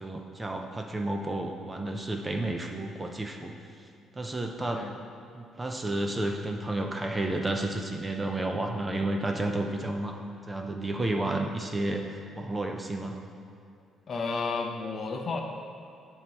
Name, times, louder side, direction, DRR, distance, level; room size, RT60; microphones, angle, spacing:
voice 1, 0.0-3.5 4.1-4.8 5.3-13.2, right 2 dB, 15° right, 3 dB, 0.4 m, -31 dB
voice 2, 4.6-4.9 14.1-15.4, left 4 dB, 40° left, 3 dB, 0.6 m, -32 dB
7.9 x 2.9 x 5.2 m, 2.5 s
cardioid pair, 130°, 0 cm